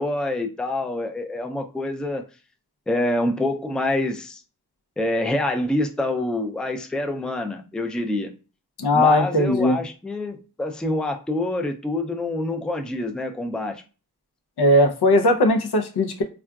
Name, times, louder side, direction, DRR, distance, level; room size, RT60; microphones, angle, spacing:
voice 1, 0.0-2.2 2.9-4.4 5.0-8.3 8.9-13.8, left 1 dB, ahead, 0.3 m, -26 dB
voice 2, 8.8-9.8 14.6-16.2, left 1 dB, 80° left, 0.6 m, -18 dB
3.6 x 2.3 x 2.3 m
wide cardioid pair, 55°, 39 cm